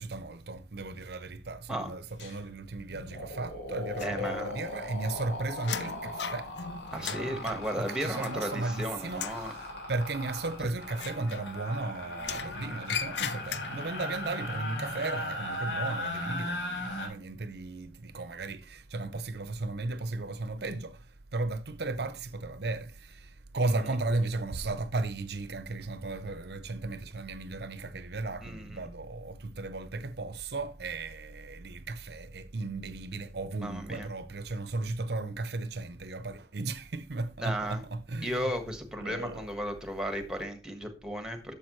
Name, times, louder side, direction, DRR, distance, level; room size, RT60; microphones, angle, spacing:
voice 1, 0.0-6.5 6.9-21.0 21.3-38.5 39.0-39.5, right 2 dB, 60° right, 0.7 m, -35 dB
sound 1, 2.2-2.4 2.7-17.1, left 1 dB, 85° left, 3.6 m, -38 dB
sound 2, 4.0-4.7 5.0-8.8 9.1-9.5 10.9-11.8 12.2-14.0, left 7 dB, 70° left, 0.6 m, -39 dB
voice 2, 4.0-4.5 6.9-9.5 10.6-10.7 23.6-23.9 28.4-28.9 33.6-34.1 37.4-37.8 38.2-41.5, equal, 5° right, 1.4 m, -35 dB
11.5 x 7.1 x 3.1 m
head